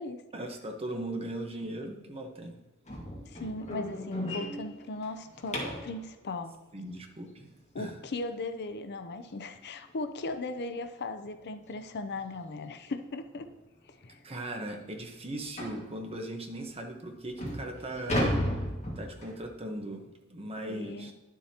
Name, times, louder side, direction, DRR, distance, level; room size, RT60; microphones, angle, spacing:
voice 1, 0.3-2.5 6.7-7.9 14.2-18.3 19.0-20.0 20.3-21.1, right 1 dB, 30° right, 3 dB, 1.1 m, -38 dB
sound 1, 2.9-6.0 8.8-8.9 9.3-9.5 9.9-10.0 10.5-10.6 11.7-11.8 12.2-12.4 13.0-13.1 13.5-13.6 14.1-14.2 15.6-15.9 16.6-16.7 17.2-19.5, equal, 30° left, 1.8 m, -34 dB
voice 2, 3.2-6.5 7.7-13.5 13.9-14.2 20.7-21.1, left 2 dB, 50° left, 8 dB, 0.6 m, -38 dB
11.0 x 7.3 x 2.9 m, 1.1 s
head